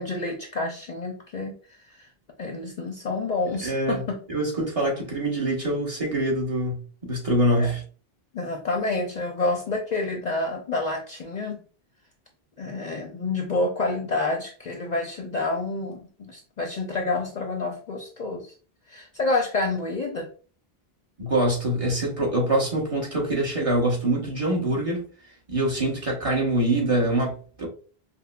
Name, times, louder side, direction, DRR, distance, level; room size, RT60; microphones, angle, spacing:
voice 1, 0.0-1.5 1.9-2.1 2.4-4.2 7.6-7.7 8.3-11.6 12.6-18.5 18.9-20.3, left 3 dB, 50° left, 0.6 m, -28 dB
voice 2, 3.6-4.0 4.3-7.8 21.2-25.0 25.5-27.7, right 1 dB, 35° right, 1.1 m, -24 dB
5.4 x 2.0 x 2.2 m
omnidirectional pair, 1.0 m